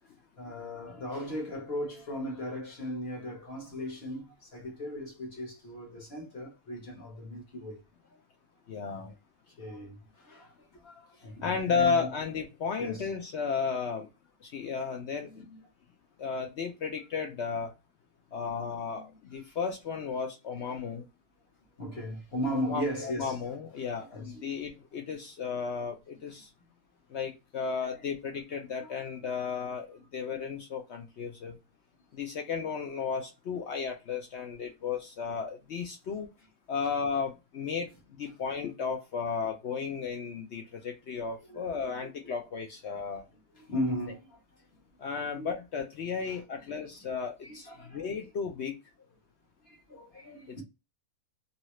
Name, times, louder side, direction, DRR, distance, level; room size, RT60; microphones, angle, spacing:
voice 1, 0.4-7.8 8.1-8.2 8.9-9.1 9.5-12.1 12.8-13.1 15.2-15.6 18.6-19.2 20.7-20.8 21.8-23.4 23.9-24.7 27.7-27.9 28.8-28.9 41.5-42.1 43.1-43.2 43.5-44.6 45.3-45.5 46.2-46.4 47.4-48.2 49.7-50.6, equal, 45° left, 1.1 m, -38 dB
voice 2, 8.7-9.1 11.4-14.1 14.4-15.4 16.2-17.7 18.3-21.1 22.7-26.5 27.1-31.6 32.1-36.3 36.7-37.9 38.2-43.3 45.0-48.7 50.5-50.6, left 6 dB, 65° left, 0.7 m, -34 dB
2.8 x 2.7 x 3.0 m
omnidirectional pair, 1.6 m